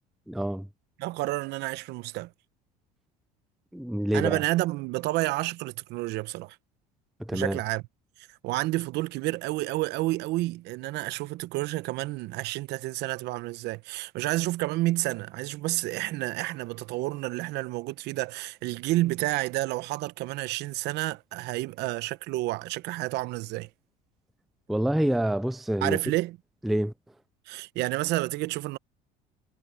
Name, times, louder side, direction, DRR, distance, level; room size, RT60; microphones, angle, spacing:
voice 1, 0.3-0.7 3.7-4.4 7.2-7.6 24.7-26.0 26.6-26.9, right 1 dB, ahead, 0.3 m, -27 dB
voice 2, 1.0-2.3 4.1-6.6 7.3-7.8 8.4-23.7 25.8-26.4 27.5-28.8, right 19 dB, 65° right, 1.0 m, -30 dB
supercardioid pair, 85°, 18 cm